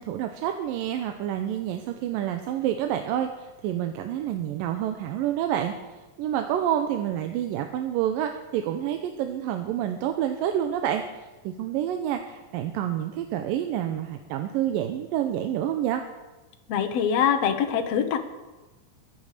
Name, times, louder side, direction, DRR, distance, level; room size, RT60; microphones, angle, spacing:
voice 1, 0.0-5.7 6.2-11.0 11.4-16.0, right 10 dB, 90° right, 6 dB, 2.5 m, -28 dB
voice 2, 16.7-18.2, left 8 dB, 65° left, 6 dB, 1.8 m, -23 dB
22.0 x 8.9 x 6.6 m, 1.2 s
omnidirectional pair, 3.9 m